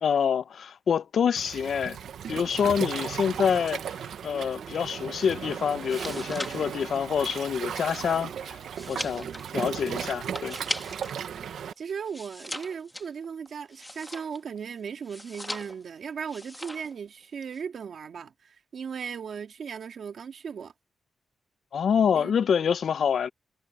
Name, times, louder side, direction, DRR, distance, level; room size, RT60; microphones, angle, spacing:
voice 1, 0.0-2.0 2.3-3.8 4.2-8.6 8.9-9.3 9.5-10.6 21.7-23.3, left 7 dB, 65° left, 0.5 m, -26 dB
Waves surf, 1.4-11.7, right 8 dB, 85° right, 0.8 m, -36 dB
sound 1, 4.4-10.9, right 4 dB, 40° right, 2.2 m, -53 dB
sound 2, 5.7-11.2 11.5-14.6 15.0-15.9 16.3-17.0 17.2-17.6, left 1 dB, 5° left, 1.6 m, -39 dB
voice 2, 11.8-20.7 22.1-22.3, right 6 dB, 65° right, 2.0 m, -37 dB
wide cardioid pair, 130°, 0 cm